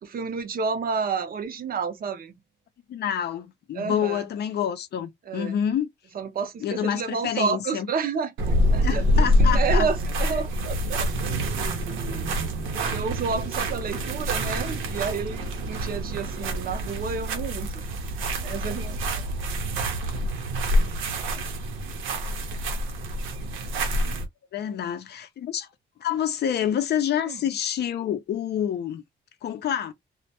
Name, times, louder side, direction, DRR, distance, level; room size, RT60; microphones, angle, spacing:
voice 1, 0.0-2.4 3.7-4.3 5.3-5.6 6.1-9.0 9.4-17.8 18.4-19.2 27.3-27.4, right 5 dB, 50° right, 0.6 m, -31 dB
voice 2, 2.9-5.9 6.6-7.9 8.8-9.9 24.5-25.7 26.0-29.0 29.4-29.9, left 9 dB, 55° left, 0.5 m, -27 dB
sound 1, 8.4-24.3, equal, 90° right, 0.7 m, -26 dB
2.1 x 2.1 x 2.8 m
cardioid pair, 90°, 20 cm